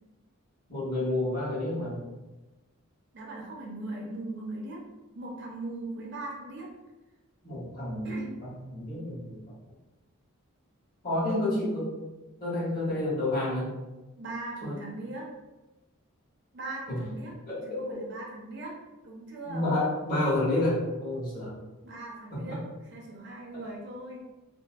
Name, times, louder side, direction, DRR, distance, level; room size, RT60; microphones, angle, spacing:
voice 1, 0.7-2.0 7.4-9.4 11.0-11.9 12.4-13.7 14.6-14.8 16.9-17.0 17.5-18.0 19.4-21.5, left 1 dB, 40° left, -8 dB, 1.1 m, -29 dB
voice 2, 3.1-4.8 5.1-6.7 8.0-8.3 14.2-15.3 16.5-17.3 17.7-19.7 21.8-22.6 22.9-24.2, right 2 dB, 50° right, -2 dB, 0.5 m, -39 dB
2.6 x 2.4 x 2.3 m, 1.1 s
head